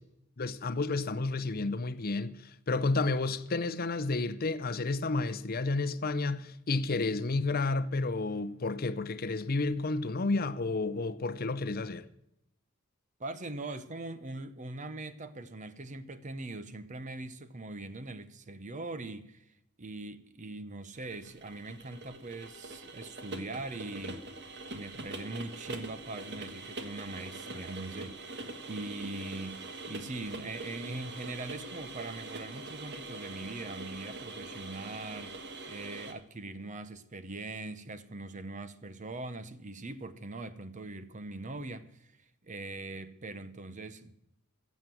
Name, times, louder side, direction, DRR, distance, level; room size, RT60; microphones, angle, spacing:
voice 1, 0.4-12.1, left 3 dB, 45° left, 0.7 m, -31 dB
voice 2, 13.2-19.4 19.8-24.3 24.7-28.4 28.7-44.1, right 2 dB, 35° right, 0.8 m, -41 dB
sound 1, 21.0-36.1, right 2 dB, 50° right, 1.4 m, -43 dB
15.0 x 7.3 x 7.8 m
head